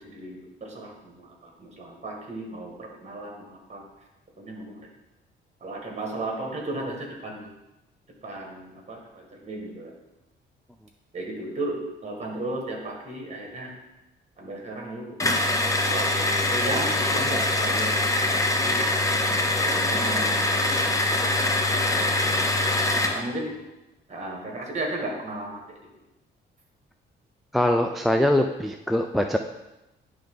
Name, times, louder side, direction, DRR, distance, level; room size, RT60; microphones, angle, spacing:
voice 1, 0.0-3.8 4.4-4.8 5.6-7.5 8.2-9.9 11.1-13.7 14.4-15.2 15.8-18.9 19.5-21.0 21.9-22.3 23.1-23.6 24.1-25.8, right 2 dB, 35° right, 0 dB, 1.9 m, -35 dB
sound 1, 15.2-23.2, left 2 dB, 15° left, 0.8 m, -23 dB
voice 2, 27.5-29.4, left 1 dB, ahead, 4 dB, 0.3 m, -23 dB
10.0 x 3.5 x 3.8 m, 0.99 s
cardioid pair, 90°, 20 cm